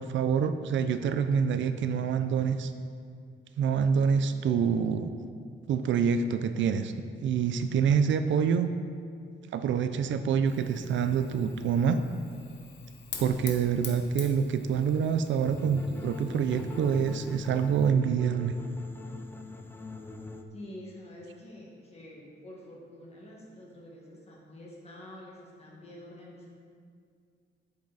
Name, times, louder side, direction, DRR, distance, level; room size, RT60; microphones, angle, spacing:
voice 1, 0.0-2.7 3.6-5.1 5.7-6.9 7.2-8.7 9.5-12.0 13.2-18.5, right 7 dB, 65° right, 10 dB, 0.4 m, -26 dB
Fire, 10.5-17.9, left 5 dB, 60° left, 1.1 m, -46 dB
sound 1, 15.5-20.4, left 3 dB, 10° left, 0.4 m, -42 dB
voice 2, 20.5-26.5, left 1 dB, 30° left, -3 dB, 1.6 m, -47 dB
8.7 x 7.6 x 4.0 m, 2.3 s
wide cardioid pair, 175°, 21 cm